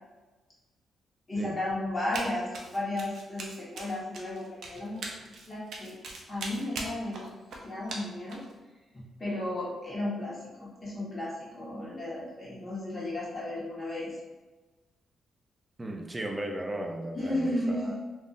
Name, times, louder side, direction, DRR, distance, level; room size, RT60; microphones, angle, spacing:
voice 1, 1.3-6.0 6.3-7.3 7.6-8.4 8.9-14.1 17.1-18.0, left 1 dB, 25° left, -7 dB, 1.4 m, -34 dB
Run, 2.1-2.3 2.5-8.5, right 3 dB, 70° right, 0.6 m, -40 dB
voice 2, 15.8-18.0, right 1 dB, 20° right, 2 dB, 0.5 m, -36 dB
3.4 x 2.6 x 2.5 m, 1.2 s
cardioid pair, 95°, 0 cm